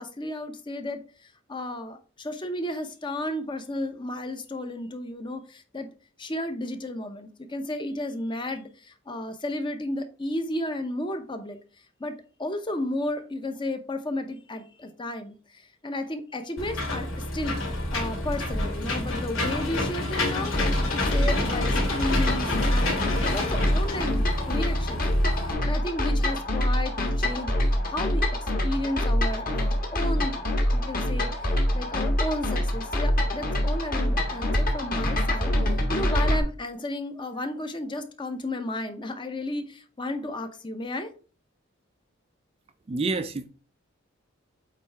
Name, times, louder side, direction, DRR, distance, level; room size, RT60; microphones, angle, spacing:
voice 1, 0.0-5.9 6.2-11.6 12.0-17.1 17.3-17.6 17.9-25.1 25.3-27.5 27.9-30.4 30.7-41.1, left 1 dB, 25° left, 0.7 m, -33 dB
Engine / Mechanisms, 16.6-25.5, left 2 dB, 80° left, 2.3 m, -29 dB
sound 1, 20.5-36.4, left 1 dB, 45° left, 1.5 m, -25 dB
voice 2, 42.9-43.5, right 3 dB, 30° right, 0.4 m, -28 dB
8.2 x 3.2 x 4.5 m
head